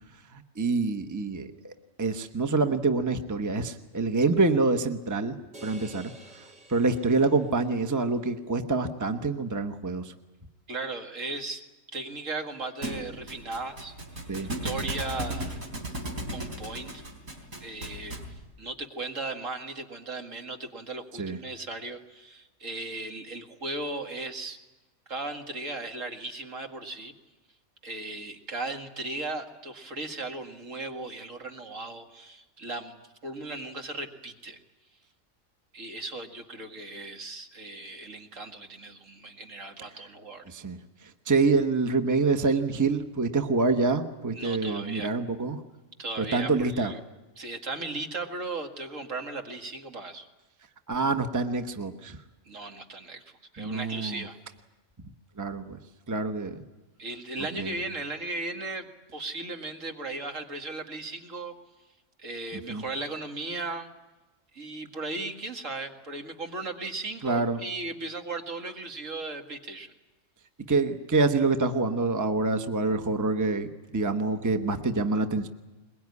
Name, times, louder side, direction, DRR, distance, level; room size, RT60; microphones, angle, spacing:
voice 1, 0.3-1.7 2.0-5.4 5.6-6.1 6.7-10.1 14.3-14.5 21.2-21.4 40.5-40.8 41.3-45.6 46.2-46.9 50.9-52.2 53.6-54.2 55.4-55.8 56.1-56.6 57.6-57.7 62.7-62.8 67.2-67.6 70.7-75.5, right 3 dB, 15° right, 8 dB, 1.0 m, -26 dB
sound 1, 5.5-7.9, right 1 dB, 50° right, 3.5 m, -50 dB
voice 2, 10.7-11.6 11.9-13.9 14.6-15.6 16.3-17.0 17.6-18.2 18.6-24.6 25.1-27.1 27.8-33.0 33.2-34.6 35.7-40.4 44.3-45.1 46.0-47.0 47.4-50.3 52.4-54.4 57.0-61.5 62.2-63.9 64.5-69.9, right 3 dB, 65° right, 4 dB, 2.3 m, -37 dB
Thump thud, 12.8-18.4, right 1 dB, 80° right, 4.3 m, -36 dB
22.0 x 21.5 x 9.7 m, 1.1 s
omnidirectional pair, 1.4 m